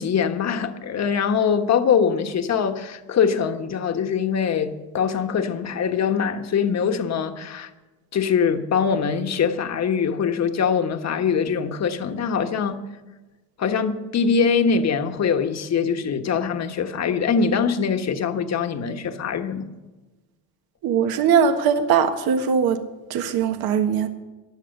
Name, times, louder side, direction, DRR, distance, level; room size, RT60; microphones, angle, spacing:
voice 1, 0.0-7.7 8.1-12.8 13.6-19.7, left 6 dB, 45° left, 1.4 m, -23 dB
voice 2, 20.8-22.8 23.1-24.1, right 7 dB, 65° right, 1.5 m, -20 dB
15.0 x 10.5 x 6.6 m
cardioid pair, 110°, 38 cm